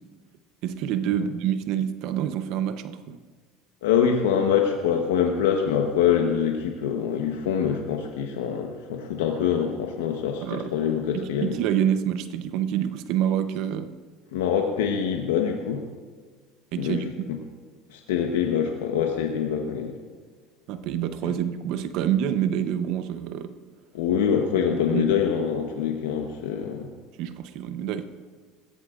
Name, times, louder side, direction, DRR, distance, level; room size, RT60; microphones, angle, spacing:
voice 1, 0.6-3.2 10.4-10.7 11.1-13.9 16.7-17.1 20.7-23.5 24.9-25.1 27.2-28.0, right 10 dB, 65° right, 11 dB, 0.8 m, -27 dB
voice 2, 3.8-11.5 14.3-15.8 16.8-17.0 17.9-19.9 23.9-26.9, left 8 dB, 85° left, 3 dB, 1.1 m, -24 dB
20.5 x 16.0 x 2.5 m, 1.5 s
supercardioid pair, 95°, 0 cm